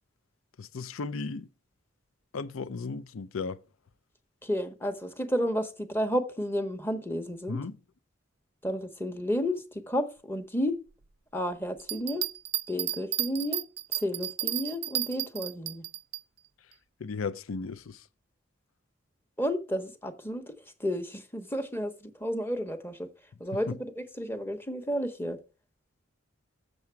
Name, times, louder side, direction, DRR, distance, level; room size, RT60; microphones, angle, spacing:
voice 1, 0.6-1.5 2.3-3.6 7.5-7.8 17.0-18.0 23.7-23.8, left 4 dB, 75° left, 0.5 m, -35 dB
voice 2, 4.4-7.6 8.6-10.8 11.3-12.3 12.7-13.6 14.0-15.8 19.4-20.5 20.8-23.1 23.4-25.4, equal, 10° left, 0.8 m, -31 dB
Bell, 11.8-16.2 16.7-16.8, right 15 dB, 50° right, 0.4 m, -32 dB
7.1 x 6.7 x 4.5 m
head